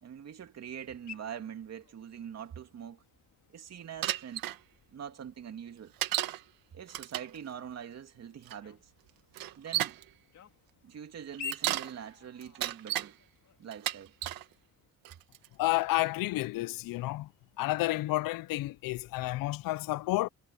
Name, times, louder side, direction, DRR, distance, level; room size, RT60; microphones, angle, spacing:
voice 1, 0.0-3.0 3.5-4.5 4.9-5.9 6.7-8.9 9.6-10.0 10.8-13.2 13.6-14.1, right 8 dB, 50° right, 2.9 m, -44 dB
sound 1, 0.8-14.9, left 6 dB, 55° left, 3.4 m, -52 dB
Bicycle, 4.0-4.6 6.0-6.4 6.9-7.4 8.5-8.6 9.3-10.0 11.3-11.9 12.4-13.1 13.7-14.4 15.1-15.5, right 13 dB, 85° right, 1.8 m, -33 dB
voice 2, 15.6-17.3 17.6-20.3, left 18 dB, 75° left, 0.6 m, -30 dB
cardioid pair, 125°, 34 cm